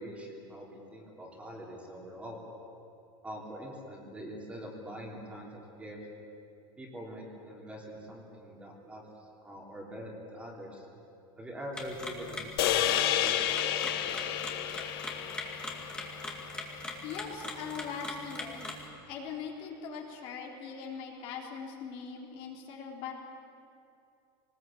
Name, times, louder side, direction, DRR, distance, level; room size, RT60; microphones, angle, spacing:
voice 1, 0.0-2.4 3.2-6.1 6.8-10.8 11.4-14.3 14.6-14.7, equal, 10° right, -1 dB, 3.3 m, -44 dB
sound 1, 11.7-18.8, left 2 dB, 5° left, 2.3 m, -41 dB
sound 2, 12.6-17.0, left 11 dB, 80° left, 1.4 m, -31 dB
voice 2, 17.0-18.6 19.0-23.1, left 6 dB, 50° left, 0 dB, 3.7 m, -41 dB
22.5 x 20.0 x 8.6 m, 2.6 s
supercardioid pair, 155°, 12 cm